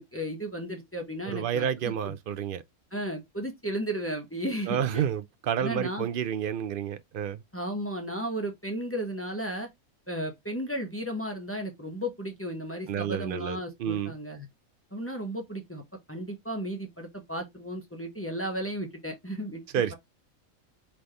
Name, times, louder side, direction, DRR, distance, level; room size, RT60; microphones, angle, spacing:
voice 1, 0.0-1.7 2.0-2.1 2.9-5.0 5.6-6.1 7.5-9.7 10.1-14.5 14.9-15.8 16.1-19.6, equal, 10° left, 0.8 m, -34 dB
voice 2, 1.3-2.6 4.7-7.4 12.9-14.1 19.7-19.9, right 9 dB, 70° right, 0.5 m, -30 dB
4.0 x 3.4 x 3.2 m
omnidirectional pair, 1.4 m